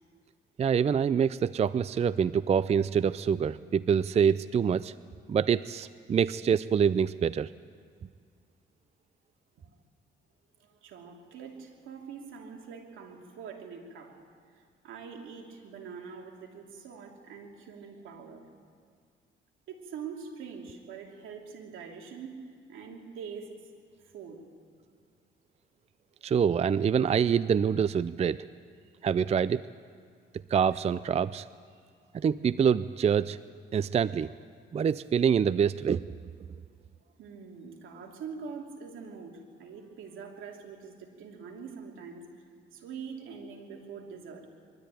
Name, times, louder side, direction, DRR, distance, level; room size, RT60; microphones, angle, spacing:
voice 1, 0.6-4.9 5.3-7.5 26.2-28.4 29.0-29.6 30.5-31.5 32.1-33.4 33.7-34.3 34.7-36.0, right 7 dB, 35° right, 16 dB, 0.4 m, -25 dB
voice 2, 10.6-14.1 14.5-18.5 19.7-22.4 22.7-23.5 24.0-24.4 31.7-31.9 37.2-42.3 42.7-44.5, right 6 dB, 85° right, 1 dB, 2.9 m, -44 dB
23.0 x 13.0 x 9.2 m, 2.1 s
cardioid pair, 90°, 20 cm